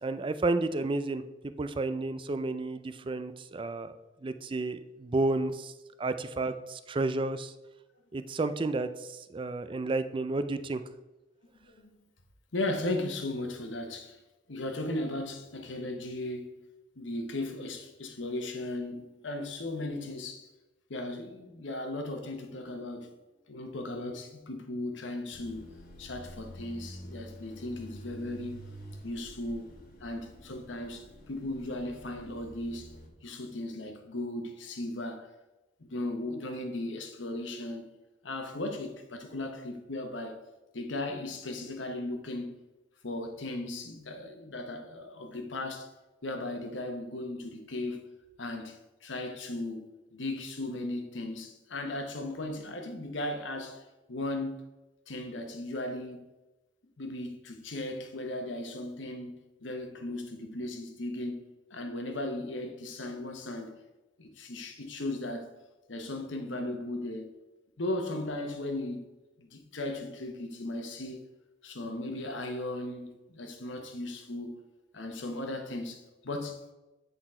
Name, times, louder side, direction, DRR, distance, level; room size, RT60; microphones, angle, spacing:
voice 1, 0.0-3.9 4.2-5.7 6.0-7.5 8.1-10.8, right 2 dB, 25° right, 0.4 m, -31 dB
voice 2, 12.5-14.2 14.5-16.5 17.0-20.5 20.9-23.1 23.5-25.7 26.0-28.7 29.0-29.7 30.0-32.9 33.2-35.3 35.8-37.9 38.2-40.4 40.7-42.6 43.0-45.9 46.2-48.0 48.4-53.8 54.1-54.6 55.1-56.2 57.0-63.8 64.2-65.5 65.9-67.3 67.8-69.1 69.4-71.2 71.6-74.5 74.9-76.6, left 1 dB, 80° left, 1.0 m, -36 dB
sound 1, 25.3-33.1, equal, 50° left, 1.2 m, -48 dB
8.2 x 4.1 x 4.3 m
head